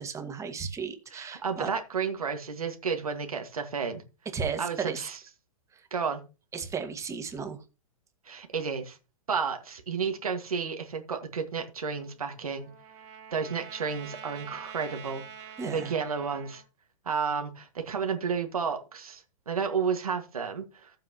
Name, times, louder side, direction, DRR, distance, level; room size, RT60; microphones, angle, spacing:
voice 1, 0.0-1.7 4.3-5.1 5.7-5.8 6.5-7.6 15.6-15.9, right 6 dB, 15° right, 1.6 m, -34 dB
voice 2, 1.1-4.0 4.6-5.2 5.9-6.2 8.3-9.0 9.3-12.7 13.3-16.6 17.1-20.9, right 6 dB, 90° right, 1.8 m, -32 dB
Trumpet, 12.0-16.6, right 8 dB, 50° right, 2.4 m, -46 dB
14.5 x 7.5 x 2.9 m
hypercardioid pair, 125°, 18 cm